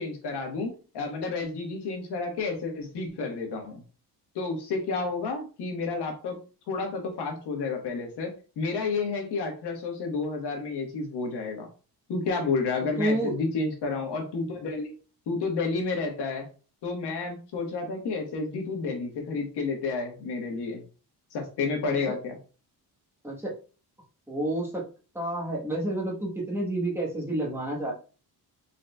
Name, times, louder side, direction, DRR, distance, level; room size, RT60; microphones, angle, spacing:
voice 1, 0.0-3.8 4.3-6.4 6.7-8.3 8.6-11.7 12.1-14.9 15.3-16.5 16.8-20.8 21.3-22.4, left 4 dB, 90° left, 2 dB, 1.4 m, -30 dB
voice 2, 13.0-13.3 21.8-22.1 23.2-23.5 24.3-24.8 25.1-27.9, right 1 dB, 5° right, -4 dB, 1.1 m, -29 dB
4.0 x 3.9 x 2.2 m, 0.35 s
cardioid pair, 180°, 39 cm